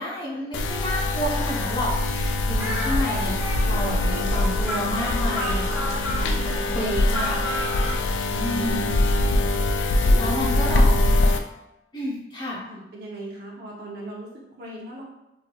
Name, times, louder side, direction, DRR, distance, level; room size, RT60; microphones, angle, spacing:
voice 1, 0.0-5.8 6.2-7.4 8.4-9.0 10.1-10.8 11.9-12.6, equal, 25° left, -5 dB, 0.8 m, -30 dB
sound 1, 0.5-11.4, left 2 dB, 75° left, 0.3 m, -23 dB
Speech, 2.6-8.0, equal, 10° right, 0.9 m, -32 dB
voice 2, 6.2-6.6 8.3-9.5 10.0-11.0 12.7-14.3 14.6-15.1, right 1 dB, 60° right, -3 dB, 0.8 m, -39 dB
3.1 x 2.7 x 2.3 m, 0.91 s
head